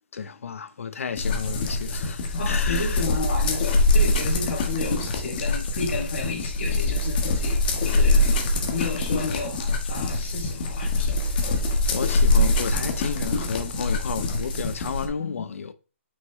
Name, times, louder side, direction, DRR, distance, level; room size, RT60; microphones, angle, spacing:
voice 1, 0.1-3.1 8.6-8.7 11.9-15.7, left 6 dB, 80° left, 0.8 m, -32 dB
sound 1, 1.2-15.1, left 2 dB, 40° left, 1.4 m, -24 dB
voice 2, 2.3-11.6 15.2-15.4, left 4 dB, 65° left, 2.8 m, -33 dB
6.2 x 5.8 x 3.2 m
hypercardioid pair, 165°, 7 cm